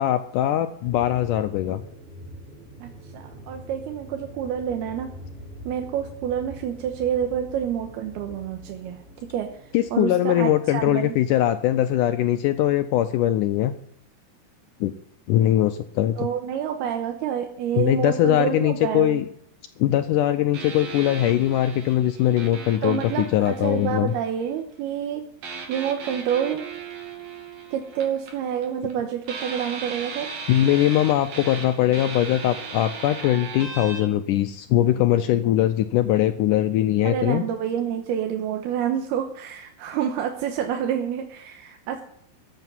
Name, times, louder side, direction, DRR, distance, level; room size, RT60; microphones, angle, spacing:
voice 1, 0.0-1.8 9.7-13.7 14.8-14.9 15.3-16.3 17.8-19.3 19.8-24.1 30.5-37.4, left 12 dB, 85° left, 9 dB, 1.8 m, -21 dB
sound 1, 0.8-10.1, equal, ahead, 5.3 m, -43 dB
voice 2, 2.8-5.1 5.6-9.0 9.3-9.5 9.9-11.2 16.2-19.2 22.8-25.2 25.7-26.6 27.7-30.3 37.0-42.0, right 9 dB, 90° right, 4 dB, 3.1 m, -28 dB
sound 2, 20.5-24.4 25.4-28.9 29.2-34.0, right 5 dB, 65° right, 4.0 m, -37 dB
14.0 x 8.1 x 9.2 m, 0.69 s
omnidirectional pair, 4.4 m